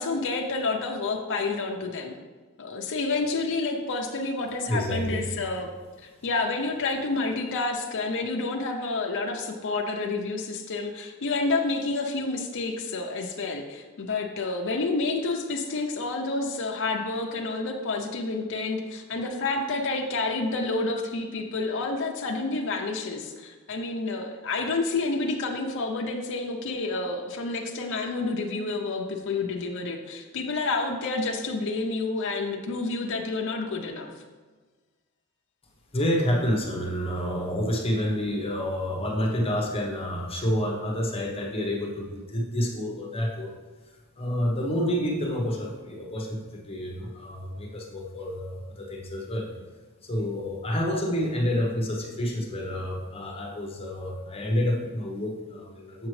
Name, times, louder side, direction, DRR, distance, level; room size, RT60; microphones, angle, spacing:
voice 1, 0.0-2.1 2.6-5.7 6.0-34.1, left 3 dB, 55° left, 1 dB, 0.6 m, -29 dB
voice 2, 4.7-5.2 35.9-43.5 44.2-49.5 50.0-56.1, equal, 25° left, 0 dB, 0.9 m, -28 dB
7.2 x 6.0 x 3.2 m, 1.4 s
head